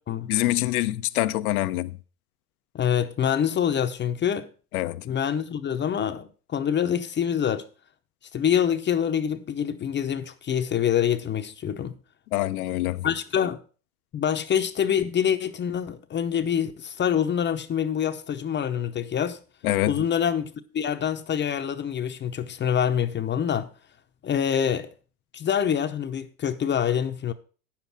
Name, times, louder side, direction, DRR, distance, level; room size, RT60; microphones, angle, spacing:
voice 1, 0.3-2.0 4.7-5.0 12.3-13.1 19.6-20.0, left 16 dB, 90° left, 0.8 m, -25 dB
voice 2, 2.7-4.5 5.1-7.6 8.3-12.0 13.0-13.6 14.1-19.4 19.8-23.7 24.2-24.9 25.3-27.3, left 8 dB, 25° left, 0.7 m, -26 dB
9.3 x 7.3 x 5.9 m
supercardioid pair, 110°, 42 cm